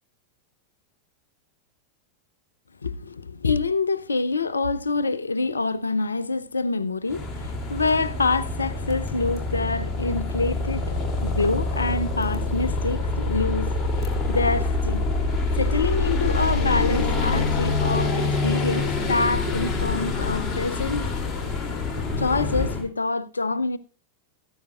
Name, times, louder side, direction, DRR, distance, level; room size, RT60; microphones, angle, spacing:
voice 1, 2.8-15.1 15.6-21.0 22.2-23.8, left 3 dB, 75° left, 0.6 m, -26 dB
sound 1, 7.1-22.8, left 3 dB, 20° left, 3.1 m, -26 dB
14.0 x 13.5 x 2.5 m
figure-of-eight pair, 90°, 0 cm